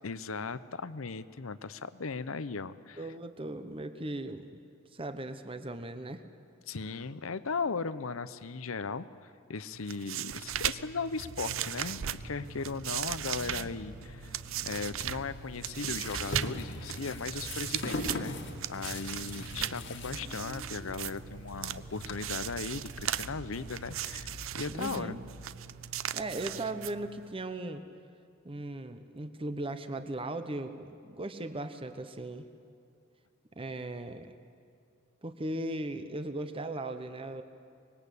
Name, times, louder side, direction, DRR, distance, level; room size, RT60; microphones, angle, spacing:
voice 1, 0.0-3.0 6.7-18.4 18.7-25.2, left 4 dB, 80° left, 15 dB, 0.8 m, -37 dB
voice 2, 3.0-4.5 4.9-6.2 19.6-19.9 24.7-25.2 26.1-27.8 28.4-32.4 33.6-34.3 35.2-37.4, right 2 dB, 25° right, 9 dB, 1.0 m, -38 dB
sound 1, 9.7-27.3, right 11 dB, 70° right, 0.6 m, -38 dB
sound 2, 11.1-26.6 27.4-27.5, left 1 dB, 30° left, 1.3 m, -48 dB
sound 3, 15.1-22.1, left 2 dB, 60° left, 2.0 m, -41 dB
24.5 x 21.0 x 8.4 m, 2.4 s
head